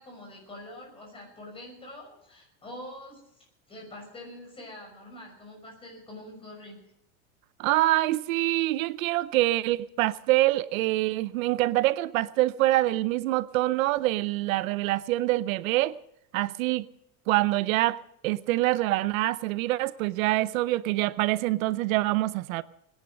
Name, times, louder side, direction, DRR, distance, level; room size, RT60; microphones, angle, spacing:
voice 1, 0.0-6.8, left 1 dB, 10° left, 6.0 m, -45 dB
voice 2, 7.6-15.9 16.3-16.9 17.3-22.6, right 17 dB, 70° right, 0.7 m, -25 dB
20.5 x 11.0 x 6.4 m
supercardioid pair, 175°, 43 cm